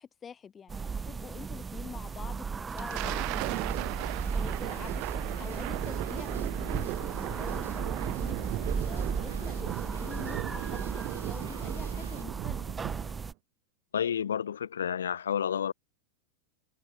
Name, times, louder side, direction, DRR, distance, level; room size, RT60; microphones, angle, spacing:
voice 1, 0.0-10.8 11.1-12.6, left 7 dB, 25° left, 2.6 m, -46 dB
sound 1, 0.7-13.3, right 5 dB, 15° right, 1.1 m, -35 dB
Thunder, 2.5-13.3, right 28 dB, 45° right, 0.7 m, -37 dB
Drum kit / Drum, 3.1-12.2, right 5 dB, 80° right, 7.1 m, -48 dB
voice 2, 13.9-15.7, left 8 dB, 70° left, 0.5 m, -30 dB
figure-of-eight pair, 85°, 0 cm